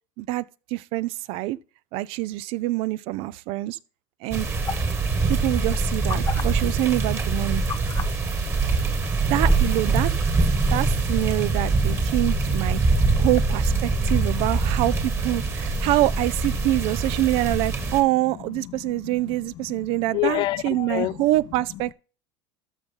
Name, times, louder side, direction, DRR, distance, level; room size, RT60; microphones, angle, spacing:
voice 1, 0.7-1.6 1.9-3.8 4.2-4.5 5.3-7.6 9.3-10.1 10.7-12.8 13.2-21.9, right 17 dB, 60° right, 0.5 m, -25 dB
sound 1, 4.3-18.0, right 3 dB, 25° right, 1.9 m, -23 dB
sound 2, 4.6-4.9 6.1-6.4 7.7-8.1 9.1-9.2, left 7 dB, 30° left, 1.0 m, -31 dB
voice 2, 12.7-13.2 14.0-14.7 15.6-15.8 18.8-19.2 19.7-19.9 20.1-21.2, left 17 dB, 45° left, 0.4 m, -30 dB
13.5 x 5.5 x 3.7 m
supercardioid pair, 130°, 11 cm